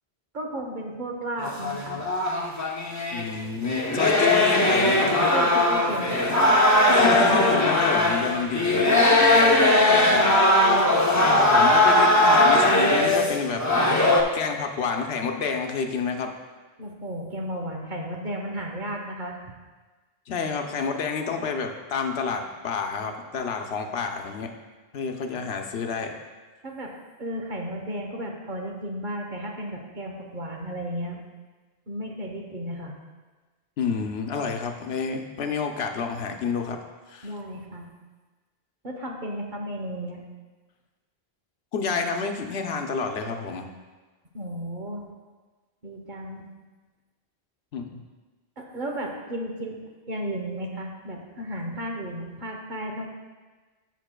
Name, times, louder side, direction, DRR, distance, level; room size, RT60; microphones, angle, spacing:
voice 1, 0.3-2.0 5.3-6.6 9.2-10.2 16.8-19.5 26.6-31.2 31.9-32.9 37.2-37.9 38.8-40.2 44.3-45.0 45.8-46.5 48.6-49.8 50.1-53.1, right 1 dB, 50° right, 1 dB, 1.1 m, -34 dB
sound 1, 1.4-3.3 3.6-14.2, left 1 dB, 20° left, 0.7 m, -19 dB
voice 2, 3.1-5.1 6.9-9.2 11.1-14.0 14.3-16.3 20.3-24.5 24.9-26.1 33.8-36.8 37.1-37.3 41.7-43.7 47.7-48.0, left 5 dB, 80° left, 4 dB, 1.0 m, -29 dB
13.5 x 5.7 x 2.2 m, 1.3 s
omnidirectional pair, 1.0 m